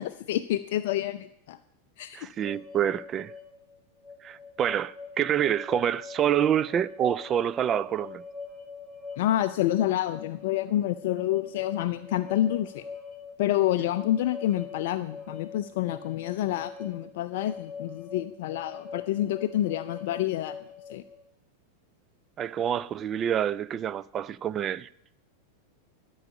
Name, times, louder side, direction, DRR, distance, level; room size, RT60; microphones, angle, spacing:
voice 1, 0.0-1.6 2.0-2.3 9.2-12.8 13.4-20.6 20.9-21.0, left 13 dB, 50° left, 0.4 m, -28 dB
voice 2, 2.1-3.3 4.2-8.2 22.4-24.9, right 9 dB, 25° right, 0.3 m, -27 dB
sound 1, 2.4-21.2, left 5 dB, 15° left, 1.6 m, -43 dB
11.5 x 5.5 x 8.6 m
figure-of-eight pair, 90°, 0 cm